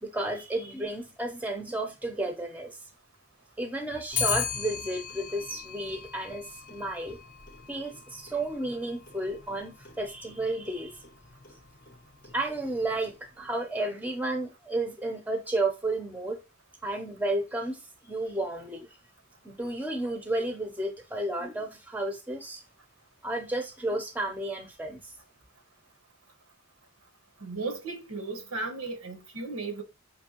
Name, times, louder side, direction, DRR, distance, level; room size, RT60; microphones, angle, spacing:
voice 1, 0.0-2.7 3.6-6.4 6.7-7.2 7.7-11.0 12.3-16.4 16.8-17.8 18.1-18.9 19.4-22.6 23.2-25.0, right 2 dB, 10° right, 0.6 m, -32 dB
Clock, 4.1-13.5, left 7 dB, 40° left, 0.6 m, -38 dB
voice 2, 27.4-29.8, right 3 dB, 90° right, 1.0 m, -35 dB
5.3 x 2.7 x 2.9 m
head